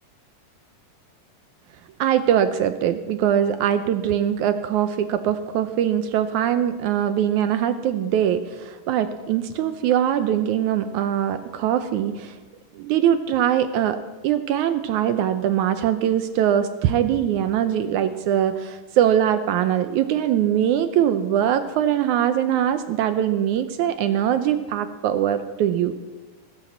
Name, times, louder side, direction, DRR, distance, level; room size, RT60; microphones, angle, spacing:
voice 1, 2.0-12.4 12.8-14.0 14.2-25.9, right 10 dB, 75° right, 10 dB, 1.9 m, -22 dB
19.5 x 9.1 x 7.3 m, 1.3 s
omnidirectional pair, 4.0 m